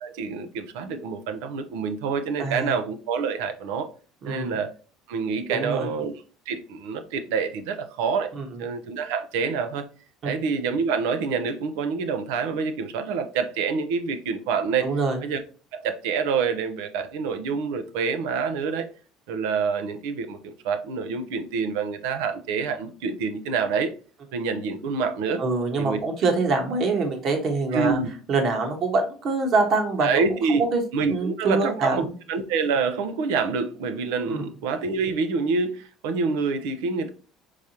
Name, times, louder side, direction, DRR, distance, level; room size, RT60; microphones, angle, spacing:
voice 1, 0.0-3.9 4.2-4.7 5.1-6.1 6.5-8.3 8.6-9.9 10.2-14.9 15.2-15.4 15.7-18.9 19.3-23.9 24.3-25.4 25.8-26.0 27.7-28.1 30.0-30.6 30.9-37.1, right 5 dB, 85° right, 0.6 m, -27 dB
voice 2, 2.4-2.7 4.2-4.5 5.5-5.9 8.4-8.5 10.2-10.3 14.8-15.2 25.4-28.0 28.3-30.2 30.5-30.8 31.1-32.1 34.3-34.4, right 3 dB, 50° right, 1.3 m, -24 dB
4.8 x 3.7 x 2.8 m
supercardioid pair, 100°, 0 cm